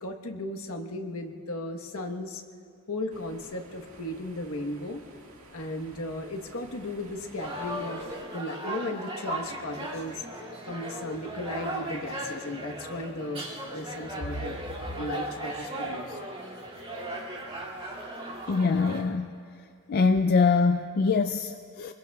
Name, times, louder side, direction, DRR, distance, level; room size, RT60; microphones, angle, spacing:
voice 1, 0.0-2.4 2.9-5.0 5.5-8.0 8.3-10.2 10.7-13.5 13.7-14.6 15.0-16.2, left 1 dB, 70° left, 3 dB, 1.2 m, -35 dB
sound 1, 3.1-8.2, right 2 dB, 65° right, 2.0 m, -51 dB
sound 2, 7.4-19.0, right 1 dB, 25° right, 2.5 m, -37 dB
voice 2, 18.5-19.4 19.9-21.9, left 4 dB, 45° left, 7 dB, 0.4 m, -24 dB
28.0 x 21.5 x 2.4 m, 2.3 s
head